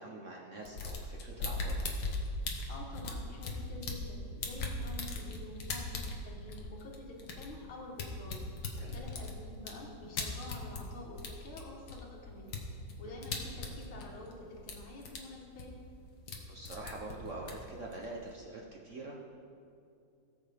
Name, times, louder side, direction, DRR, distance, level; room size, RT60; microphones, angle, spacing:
voice 1, 0.0-1.7 8.8-8.9 13.0-13.2 16.5-19.2, right 2 dB, 50° right, -1 dB, 1.0 m, -45 dB
sound 1, 0.6-4.1 4.4-10.9 11.2-14.3 14.6-15.2 15.4-16.4 16.6-18.3, left 3 dB, 55° left, 1.6 m, -39 dB
voice 2, 2.7-8.4 8.8-12.5 13.0-15.7, left 2 dB, 85° left, -1 dB, 2.5 m, -48 dB
18.0 x 7.2 x 3.5 m, 2.6 s
omnidirectional pair, 2.2 m